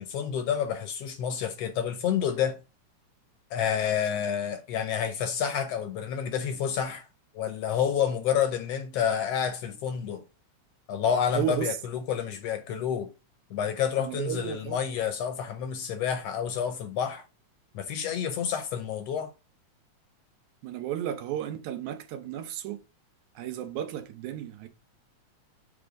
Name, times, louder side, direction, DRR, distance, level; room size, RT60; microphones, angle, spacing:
voice 1, 0.0-2.6 3.5-7.1 7.3-10.2 10.9-13.1 13.5-17.2 17.7-19.3, left 8 dB, 70° left, 1.7 m, -29 dB
voice 2, 11.3-11.8 14.0-14.8 20.6-22.8 23.4-24.7, right 11 dB, 85° right, 2.2 m, -33 dB
8.0 x 3.4 x 5.0 m
omnidirectional pair, 3.3 m